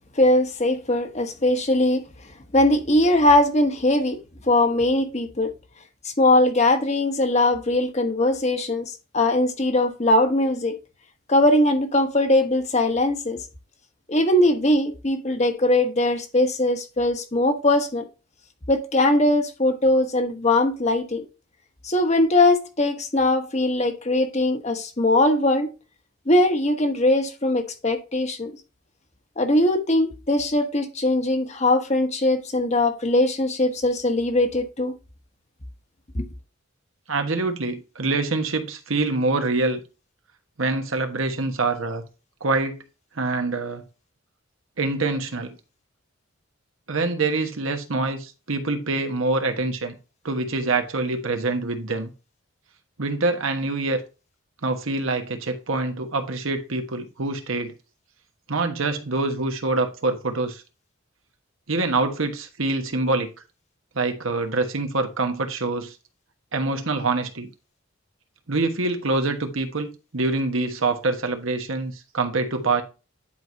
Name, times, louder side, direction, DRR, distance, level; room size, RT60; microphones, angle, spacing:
voice 1, 0.2-2.0 2.5-4.2 4.4-5.5 6.2-10.8 11.3-13.4 14.1-18.0 18.7-21.2 21.8-25.7 26.3-28.5 29.4-34.9 36.1-36.2, left 1 dB, 35° left, 1.1 m, -20 dB
voice 2, 37.1-39.8 40.6-42.0 42.4-42.8 43.1-43.8 44.8-45.6 46.9-50.0 50.2-52.1 53.0-54.0 54.6-57.7 58.5-60.6 61.7-63.3 63.9-65.9 66.5-67.5 68.5-72.8, right 3 dB, 75° right, 1.3 m, -25 dB
10.5 x 4.6 x 2.7 m
head